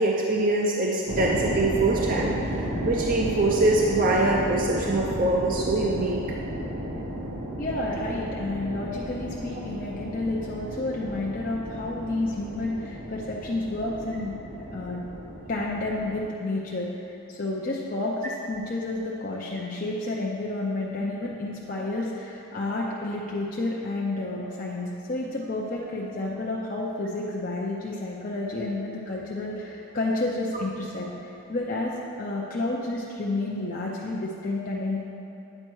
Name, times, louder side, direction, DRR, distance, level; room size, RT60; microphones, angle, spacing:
voice 1, 0.0-6.2 13.8-13.9, right 2 dB, 40° right, -2 dB, 0.5 m, -24 dB
sound 1, 1.1-16.3, equal, 85° right, 1.2 m, -33 dB
voice 2, 7.6-14.4 14.7-15.0 15.5-35.0, left 2 dB, 40° left, -4 dB, 0.6 m, -30 dB
8.8 x 4.3 x 4.6 m, 2.9 s
head